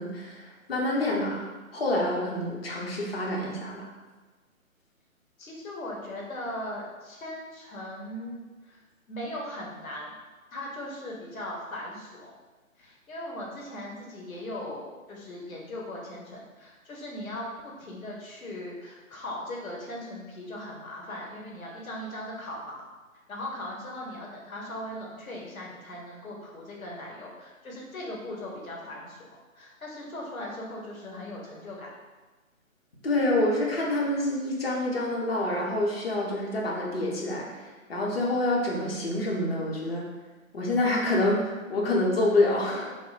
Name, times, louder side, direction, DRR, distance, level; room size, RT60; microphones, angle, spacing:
voice 1, 0.0-1.4 1.7-3.9 33.0-40.1 40.5-42.9, left 1 dB, 45° left, -2 dB, 0.7 m, -27 dB
voice 2, 5.4-8.8 9.1-10.1 10.5-12.3 12.8-22.8 23.3-29.3 29.6-31.9, left 1 dB, 75° left, -2 dB, 1.0 m, -39 dB
3.2 x 2.1 x 3.9 m, 1.3 s
figure-of-eight pair, 145°, 42 cm